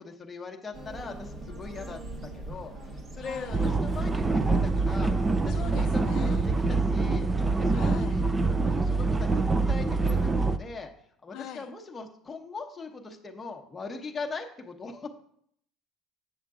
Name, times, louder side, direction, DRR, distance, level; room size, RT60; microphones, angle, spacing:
voice 1, 0.0-2.7 3.1-7.3 7.6-8.2 8.6-10.9 11.2-15.1, left 4 dB, 15° left, 3 dB, 0.8 m, -40 dB
sound 1, 0.7-6.7, right 1 dB, 30° right, 0.9 m, -41 dB
voice 2, 3.2-3.6 5.5-6.4 7.7-8.1 11.3-11.7, left 11 dB, 55° left, 7 dB, 0.4 m, -42 dB
sound 2, 3.5-10.6, right 3 dB, 15° right, 0.3 m, -25 dB
7.6 x 7.1 x 3.6 m, 0.66 s
cardioid pair, 165°, 0 cm